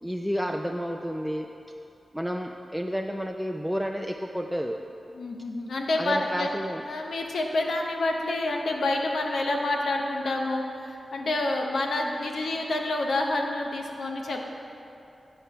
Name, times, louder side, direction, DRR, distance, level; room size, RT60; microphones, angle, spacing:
voice 1, 0.0-1.5 2.1-4.8 6.0-6.8, equal, ahead, 3 dB, 0.4 m, -30 dB
voice 2, 5.1-6.5 6.9-14.4, left 2 dB, 85° left, 1 dB, 0.8 m, -28 dB
9.5 x 4.5 x 5.7 m, 2.8 s
cardioid pair, 70°, 0 cm